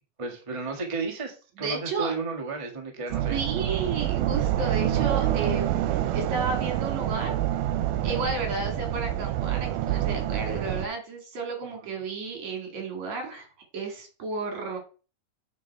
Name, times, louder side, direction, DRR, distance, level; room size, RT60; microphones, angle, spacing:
voice 1, 0.2-3.4 8.1-8.3 11.8-11.9, right 4 dB, 20° right, 1 dB, 0.8 m, -33 dB
voice 2, 1.6-2.1 3.3-7.3 8.0-13.5 13.7-14.8, right 3 dB, 60° right, 3 dB, 3.4 m, -32 dB
sound 1, 3.1-10.9, right 12 dB, 90° right, 2.2 m, -27 dB
9.0 x 4.9 x 4.5 m, 0.36 s
omnidirectional pair, 3.6 m